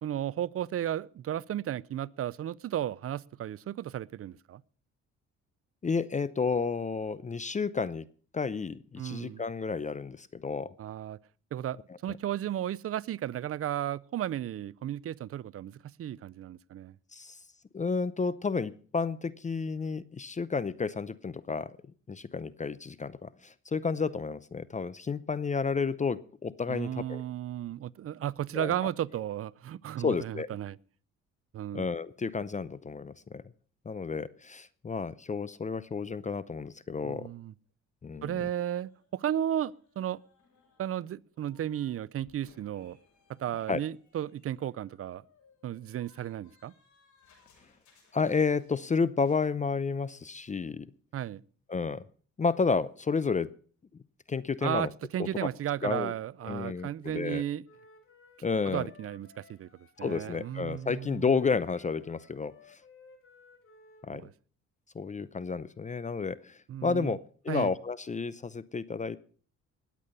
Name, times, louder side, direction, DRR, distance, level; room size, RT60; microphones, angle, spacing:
voice 1, 0.0-4.6 9.0-9.4 10.8-11.2 11.5-16.9 26.7-30.8 31.5-31.9 37.0-37.5 38.2-40.2 40.8-43.0 43.3-45.2 45.6-46.7 51.1-51.4 54.6-57.6 58.7-59.7 60.0-61.3 64.1-64.3 66.7-67.2 67.5-67.7, right 11 dB, 50° right, 0.5 m, -34 dB
voice 2, 5.8-8.1 8.3-10.7 17.1-17.4 17.7-21.7 22.1-27.2 28.5-28.7 30.0-30.5 31.7-33.4 33.9-37.3 38.0-38.4 43.7-43.8 48.1-50.9 51.7-52.0 52.4-53.5 54.3-54.9 55.2-55.3 55.8-56.1 56.4-57.4 58.4-58.9 60.0-62.8 64.0-64.3 64.9-69.2, left 5 dB, 25° left, 0.6 m, -31 dB
sound 1, 38.2-42.0 42.2-48.9 49.2-49.5, left 5 dB, 75° left, 6.9 m, -66 dB
Wind instrument woodwind instrument, 57.6-64.1, left 4 dB, 45° left, 3.5 m, -57 dB
19.5 x 8.4 x 5.5 m
cardioid pair, 90°, 30 cm